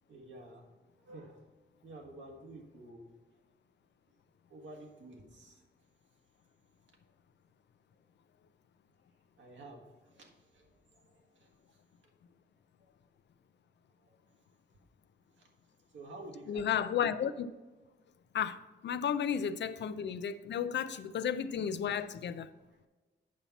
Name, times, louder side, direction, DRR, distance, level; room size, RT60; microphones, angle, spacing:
voice 1, 0.1-0.7 1.0-1.5 1.8-3.1 4.5-5.6 9.4-11.5 12.8-12.9 14.0-14.1 15.4-15.5 15.9-16.7, right 2 dB, 85° right, 1 dB, 1.7 m, -51 dB
voice 2, 16.5-17.5 18.3-22.5, left 8 dB, 70° left, 13 dB, 0.5 m, -33 dB
8.6 x 5.7 x 4.1 m, 1.3 s
cardioid pair, 95°, 19 cm